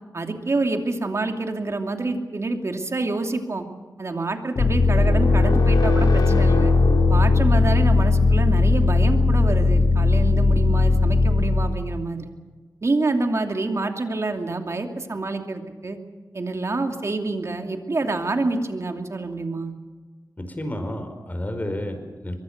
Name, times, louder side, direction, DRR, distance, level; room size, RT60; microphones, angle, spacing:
voice 1, 0.1-3.6 4.0-6.7 7.1-12.3 12.8-16.0 16.3-19.7, right 2 dB, 45° right, 4 dB, 2.8 m, -27 dB
sound 1, 4.6-12.0, left 3 dB, 90° left, 3.1 m, -18 dB
voice 2, 20.4-22.4, left 1 dB, 25° left, 6 dB, 4.9 m, -31 dB
24.0 x 23.0 x 6.7 m, 1.4 s
wide cardioid pair, 80°, 7 cm